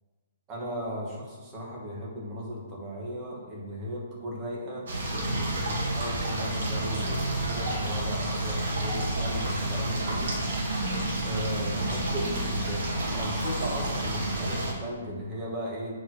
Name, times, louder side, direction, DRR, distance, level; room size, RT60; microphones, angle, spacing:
voice 1, 0.5-10.3 11.2-15.9, equal, 15° right, -4 dB, 2.0 m, -36 dB
sound 1, 4.9-14.7, right 1 dB, 65° right, 2.3 m, -30 dB
7.5 x 4.8 x 6.5 m, 1.4 s
hypercardioid pair, 170°, 0 cm